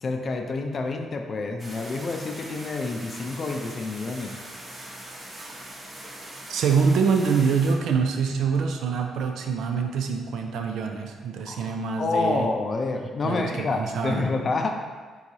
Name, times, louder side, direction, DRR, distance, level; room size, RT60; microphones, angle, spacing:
voice 1, 0.0-4.3 11.5-14.8, left 3 dB, 45° left, 4 dB, 0.5 m, -28 dB
sound 1, 1.6-7.7, right 1 dB, 30° right, 1.0 m, -41 dB
voice 2, 6.5-12.5 13.2-14.3, right 5 dB, 75° right, 4 dB, 0.5 m, -25 dB
4.6 x 3.8 x 2.7 m, 1.5 s
cardioid pair, 90°, 0 cm